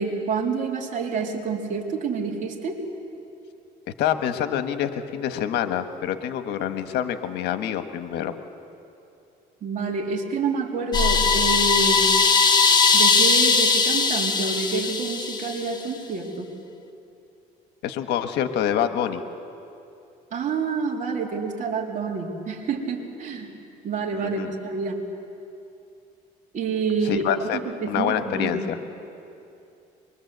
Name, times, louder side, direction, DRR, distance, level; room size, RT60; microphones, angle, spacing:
voice 1, 0.0-2.8 9.6-12.1 12.9-16.5 20.3-23.5 23.8-25.0 26.5-28.7, right 4 dB, 50° right, 0 dB, 3.5 m, -28 dB
voice 2, 4.0-8.3 17.8-19.2 24.2-24.5 27.0-27.6 27.9-28.8, left 10 dB, 85° left, 9 dB, 1.3 m, -26 dB
sound 1, 10.9-15.8, left 4 dB, 25° left, 1.7 m, -19 dB
23.5 x 22.5 x 8.0 m, 2.7 s
cardioid pair, 110°, 17 cm